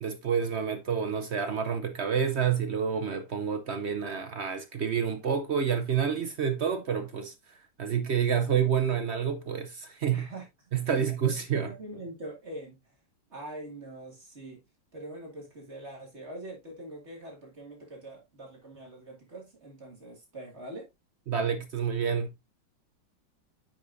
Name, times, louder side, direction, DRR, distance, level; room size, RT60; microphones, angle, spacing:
voice 1, 0.0-7.3 7.8-10.3 10.7-11.7 21.3-22.4, right 7 dB, 65° right, 0.6 m, -28 dB
voice 2, 10.1-10.5 10.9-11.1 11.5-12.8 13.3-14.6 14.9-20.8, right 1 dB, 35° right, 2.2 m, -43 dB
8.6 x 5.3 x 2.6 m
omnidirectional pair, 2.0 m